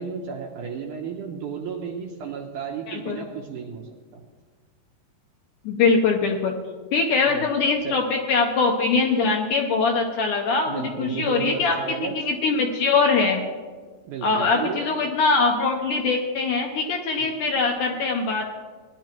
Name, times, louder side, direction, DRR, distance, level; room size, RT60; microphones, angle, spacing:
voice 1, 0.0-4.2 7.3-7.4 7.8-8.0 10.7-12.1 14.1-14.9 17.2-17.3, right 6 dB, 75° right, 1 dB, 2.0 m, -33 dB
voice 2, 2.9-3.2 5.7-6.5 6.9-11.8 12.0-13.4 14.2-18.5, left 4 dB, 75° left, 2 dB, 2.0 m, -22 dB
18.5 x 10.5 x 3.0 m, 1.5 s
omnidirectional pair, 4.4 m